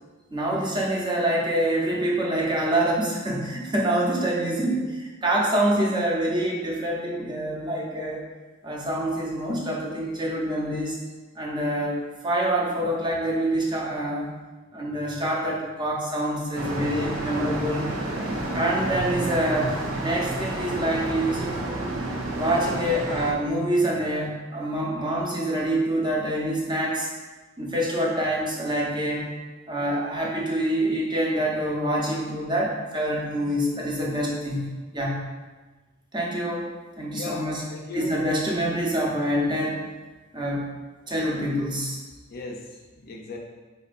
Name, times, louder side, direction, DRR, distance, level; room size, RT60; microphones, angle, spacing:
voice 1, 0.3-8.2 8.6-11.0 11.3-14.3 14.7-17.9 18.5-21.9 22.3-27.1 27.6-29.3 29.7-35.3 36.1-36.7 37.0-37.6 37.9-39.8 40.3-40.7 41.1-42.0, right 1 dB, 20° right, -3 dB, 0.6 m, -26 dB
sound 1, 16.6-23.3, right 2 dB, 90° right, 0.5 m, -30 dB
voice 2, 37.1-38.1 42.3-42.6 43.0-43.4, left 2 dB, 50° left, 0 dB, 0.4 m, -36 dB
4.4 x 2.7 x 2.4 m, 1.3 s
head